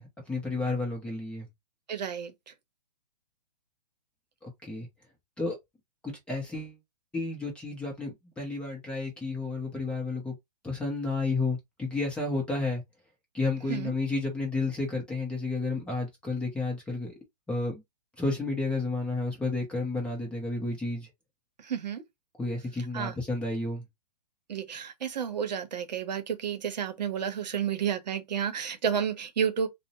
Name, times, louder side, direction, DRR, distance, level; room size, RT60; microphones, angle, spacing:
voice 1, 0.0-1.5 4.4-4.9 5.4-5.6 6.0-6.8 7.1-10.4 10.6-12.8 13.3-17.1 17.5-17.8 18.2-21.1 22.4-23.8, left 3 dB, 5° left, 0.5 m, -31 dB
voice 2, 1.9-2.3 13.7-13.9 21.6-22.0 22.9-23.1 24.5-29.7, right 8 dB, 80° right, 0.7 m, -31 dB
2.6 x 2.0 x 2.6 m
hypercardioid pair, 150°, 21 cm